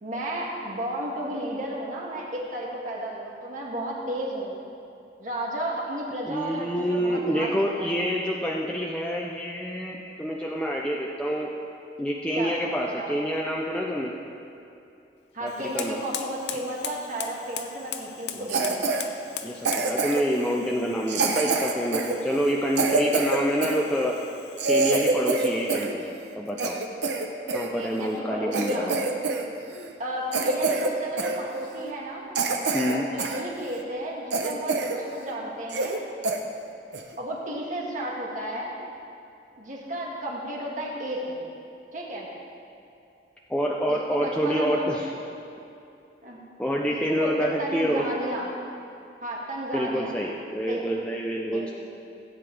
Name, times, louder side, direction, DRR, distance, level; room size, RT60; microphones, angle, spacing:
voice 1, 0.0-4.5 5.2-7.9 12.3-12.5 13.0-13.1 15.3-18.8 27.7-28.9 30.0-32.2 32.9-36.0 37.2-38.7 39.6-41.4 41.9-42.3 43.9-44.9 46.2-46.4 46.9-48.5 49.2-50.2 50.7-50.8 51.5-51.7, right 1 dB, 45° right, -3 dB, 1.9 m, -33 dB
voice 2, 6.2-11.5 12.0-14.1 15.4-16.0 18.3-18.6 19.4-24.2 24.7-26.1 26.4-26.7 27.5-29.0 32.7-33.0 43.5-45.1 46.6-48.0 49.7-51.7, equal, 5° left, -3 dB, 0.6 m, -27 dB
Fire, 15.4-26.0, left 9 dB, 65° left, 0.6 m, -41 dB
Cough, 18.5-19.0 19.6-20.4 21.1-23.8 24.3-24.4 24.6-25.9 26.2-27.7 28.2-28.3 28.5-29.4 29.7-29.9 30.3-30.9 31.2-31.4 31.9-32.0 32.3-33.4 33.8-33.9 34.3-35.0 35.3-35.4 35.7-36.0 36.2-36.4 36.9-37.1, right 3 dB, 75° right, 0.9 m, -26 dB
16.0 x 8.8 x 3.4 m, 2.7 s
head